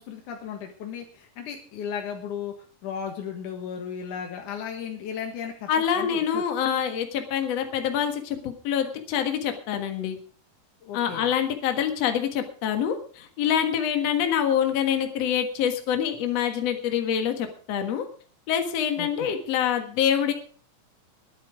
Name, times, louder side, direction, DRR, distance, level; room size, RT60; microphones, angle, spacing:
voice 1, 0.0-2.5 2.8-6.4 10.8-11.3 19.0-19.3, left 7 dB, 85° left, 3 dB, 3.1 m, -35 dB
voice 2, 5.7-10.2 10.9-18.0 18.5-20.3, left 8 dB, 60° left, 6 dB, 2.6 m, -26 dB
21.5 x 8.6 x 5.1 m, 0.43 s
omnidirectional pair, 3.5 m